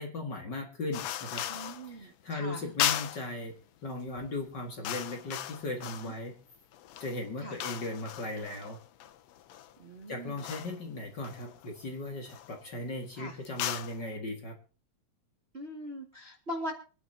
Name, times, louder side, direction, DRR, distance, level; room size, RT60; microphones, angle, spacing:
voice 1, 0.0-1.5 1.9-3.5 3.8-6.3 7.0-8.8 10.1-14.6, left 2 dB, 40° left, 2 dB, 2.2 m, -37 dB
sound 1, 0.9-1.9 2.8-3.3 4.1-4.3 4.6-6.3 6.7-9.7 10.4-10.8 11.2-11.8 12.3-12.6 13.4-14.0, left 12 dB, 70° left, 1.8 m, -36 dB
voice 2, 1.5-2.6 6.0-6.1 7.4-7.6 9.8-10.4 13.1-13.4 15.5-16.7, equal, 25° right, 1 dB, 1.6 m, -41 dB
24.5 x 10.5 x 2.8 m, 0.36 s
omnidirectional pair, 3.4 m